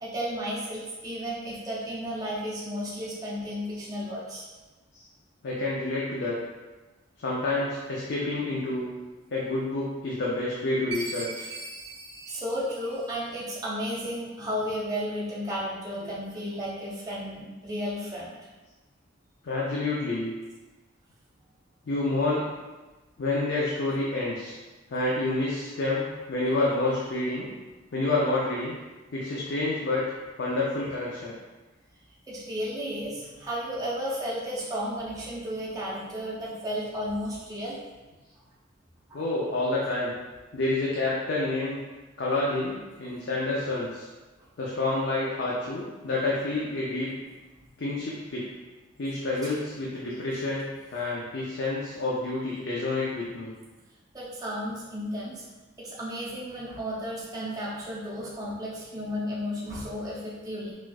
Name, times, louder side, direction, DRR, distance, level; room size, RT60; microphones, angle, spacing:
voice 1, 0.0-4.4 12.3-18.3 32.3-37.8 39.1-39.2 54.1-55.4 55.8-60.7, equal, 20° right, -7 dB, 0.5 m, -33 dB
voice 2, 5.4-6.4 7.2-8.9 9.3-11.5 16.0-16.1 19.4-20.3 21.9-22.5 23.2-24.6 24.9-27.5 27.9-28.7 29.1-30.0 30.4-31.4 39.1-40.1 40.5-41.8 42.2-44.1 44.6-47.1 47.8-48.5 49.0-53.5, left 2 dB, 60° left, -5 dB, 0.5 m, -28 dB
Chime, 10.9-13.5, right 2 dB, 65° right, 0.6 m, -40 dB
4.2 x 2.3 x 2.3 m, 1.2 s
head